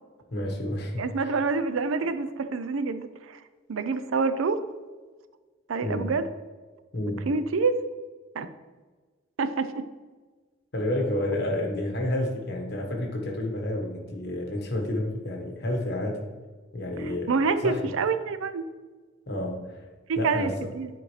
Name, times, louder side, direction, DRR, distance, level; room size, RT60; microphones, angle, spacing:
voice 1, 0.3-1.4 5.8-6.2 6.9-7.3 10.7-16.2 16.7-17.3 17.6-17.9 19.3-19.9 20.2-20.6, left 1 dB, 50° left, 1 dB, 1.3 m, -30 dB
voice 2, 1.0-3.4 3.7-4.6 5.7-6.3 7.3-7.8 8.4-8.5 9.4-9.9 17.3-18.6 20.1-20.5 20.7-20.9, right 4 dB, 75° right, 11 dB, 0.5 m, -27 dB
9.6 x 4.4 x 3.2 m, 1.4 s
head